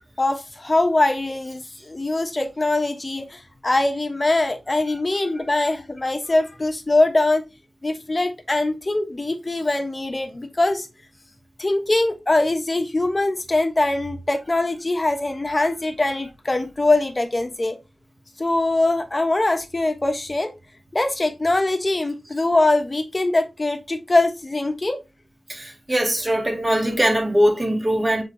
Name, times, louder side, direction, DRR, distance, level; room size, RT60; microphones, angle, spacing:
voice 1, 0.2-7.4 7.8-10.9 11.6-17.8 18.4-20.5 20.9-25.0, left 2 dB, 35° left, 1.2 m, -22 dB
voice 2, 25.5-28.2, equal, 25° right, 1.9 m, -21 dB
6.9 x 4.4 x 3.1 m
wide cardioid pair, 75°, 0 cm